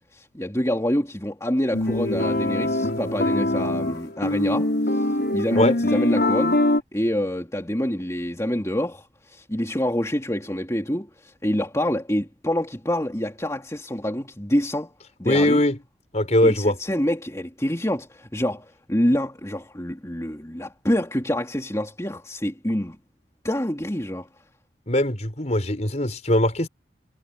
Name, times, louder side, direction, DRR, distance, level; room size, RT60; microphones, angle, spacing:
voice 1, 0.1-6.6 6.9-14.9 15.2-15.6 16.4-23.0 23.4-24.3, left 1 dB, 15° left, 3.1 m, -26 dB
sound 1, 1.7-6.8, left 1 dB, 65° left, 4.8 m, -23 dB
voice 2, 15.2-15.8 16.1-16.8 24.9-26.7, left 1 dB, 40° left, 5.0 m, -20 dB
head